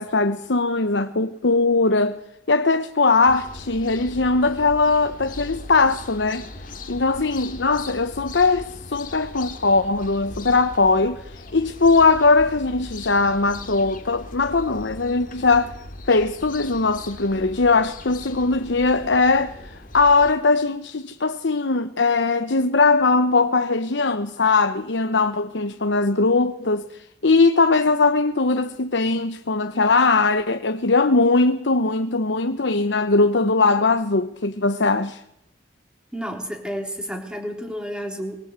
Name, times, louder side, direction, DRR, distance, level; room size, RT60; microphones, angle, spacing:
voice 1, 0.0-2.2 2.5-6.4 6.9-15.7 16.1-35.2, left 3 dB, 75° left, 1.0 m, -20 dB
sound 1, 3.2-20.3, left 2 dB, 50° left, 2.3 m, -39 dB
voice 2, 36.1-38.4, equal, 5° right, 3.7 m, -31 dB
23.5 x 22.0 x 8.2 m
head